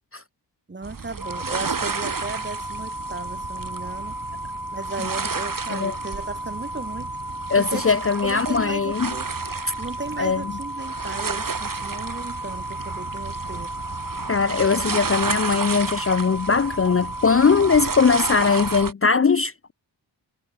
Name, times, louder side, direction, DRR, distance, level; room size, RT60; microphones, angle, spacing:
voice 1, 0.7-4.2 4.7-7.1 7.6-7.8 8.2-9.3 9.8-13.8, right 3 dB, 25° right, 1.8 m, -35 dB
sound 1, 0.8-18.9, right 5 dB, 45° right, 3.9 m, -32 dB
sound 2, 1.2-18.9, right 1 dB, 5° right, 4.7 m, -34 dB
voice 2, 7.5-9.1 10.2-10.4 14.3-19.7, left 5 dB, 30° left, 0.6 m, -20 dB
wide cardioid pair, 110°, 44 cm